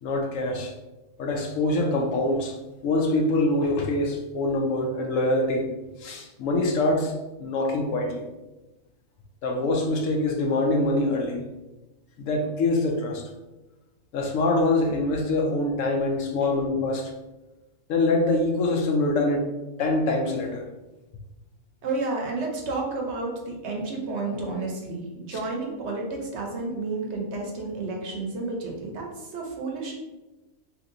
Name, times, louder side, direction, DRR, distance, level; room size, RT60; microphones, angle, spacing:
voice 1, 0.0-0.7 1.2-2.6 2.8-5.7 6.0-7.1 7.4-8.2 9.4-11.4 12.2-13.2 14.1-17.1 17.9-19.5 19.8-20.6 25.3-25.4, left 2 dB, 75° left, 2 dB, 1.0 m, -24 dB
voice 2, 21.8-30.0, right 3 dB, 60° right, 0 dB, 0.9 m, -31 dB
2.9 x 2.7 x 3.7 m, 1.1 s
omnidirectional pair, 1.4 m